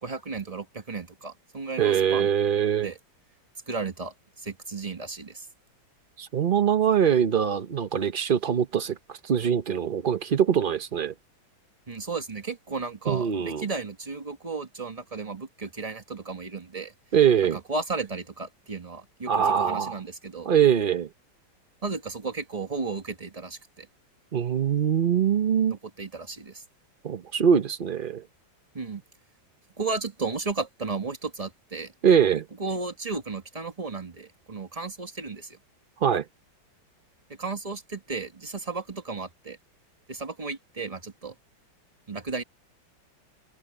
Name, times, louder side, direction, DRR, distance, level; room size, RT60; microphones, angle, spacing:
voice 1, 0.0-2.3 2.8-3.0 3.7-5.5 11.9-16.9 17.5-20.5 21.8-23.9 25.7-26.6 28.7-29.0 29.8-31.9 32.6-35.6 37.4-39.6 40.1-41.3 42.1-42.4, right 4 dB, 20° right, 1.5 m, -34 dB
voice 2, 1.8-2.9 6.2-11.1 13.1-13.6 17.1-17.6 19.3-20.0 20.5-21.1 24.3-25.8 27.0-28.2 32.0-32.5 36.0-36.2, right 8 dB, 80° right, 0.4 m, -23 dB
omnidirectional pair, 2.1 m